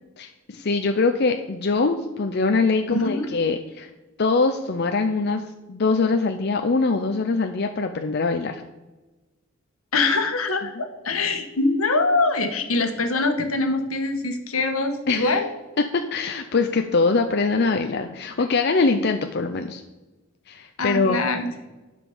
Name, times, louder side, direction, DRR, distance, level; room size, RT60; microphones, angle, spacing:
voice 1, 0.2-3.9 4.2-5.4 5.7-8.6 10.8-10.9 15.1-15.4 15.8-19.8 20.5-21.2, left 3 dB, 50° left, 6 dB, 0.6 m, -23 dB
voice 2, 2.9-3.3 9.9-15.5 20.8-21.5, left 3 dB, 80° left, 5 dB, 1.5 m, -23 dB
12.0 x 5.1 x 7.1 m, 1.1 s
head